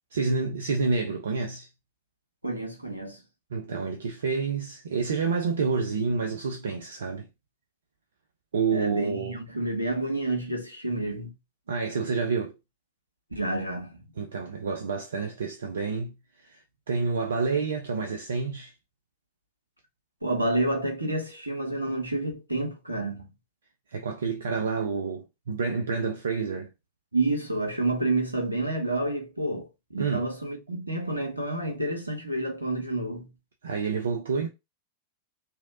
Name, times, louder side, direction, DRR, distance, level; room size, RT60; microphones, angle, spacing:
voice 1, 0.1-1.7 3.5-7.3 8.5-9.3 11.7-12.6 14.2-16.1 16.4-16.6 16.9-18.7 23.9-26.7 30.0-30.3 33.6-34.5, right 4 dB, 65° right, 0.5 m, -28 dB
voice 2, 2.4-3.2 8.7-11.3 13.3-14.0 20.2-23.3 27.1-33.3, right 2 dB, 85° right, 1.1 m, -29 dB
3.0 x 2.8 x 3.7 m
figure-of-eight pair, 90°, 0 cm